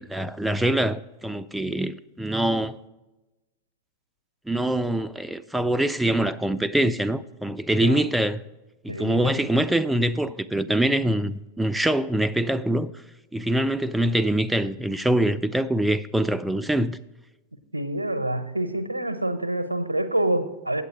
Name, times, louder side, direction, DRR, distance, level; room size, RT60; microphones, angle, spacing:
voice 1, 0.0-2.8 4.5-8.4 8.8-12.9 13.3-17.0, right 1 dB, 5° right, 0.4 m, -24 dB
voice 2, 8.9-9.6 17.7-20.8, right 1 dB, 85° right, 0.8 m, -27 dB
8.4 x 8.1 x 5.0 m
figure-of-eight pair, 90°, 0 cm